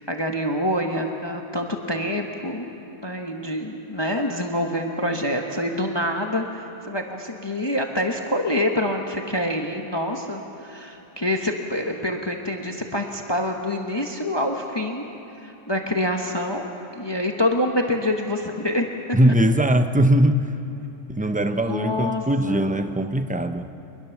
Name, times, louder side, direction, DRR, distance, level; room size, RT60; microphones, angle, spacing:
voice 1, 0.0-2.7 3.0-15.0 15.4-16.6 16.9-18.9 21.5-22.7, left 1 dB, 20° left, 2 dB, 1.2 m, -26 dB
voice 2, 19.1-20.5 21.1-23.7, right 1 dB, 10° right, 8 dB, 0.4 m, -20 dB
24.5 x 21.0 x 7.2 m, 3.0 s
omnidirectional pair, 1.4 m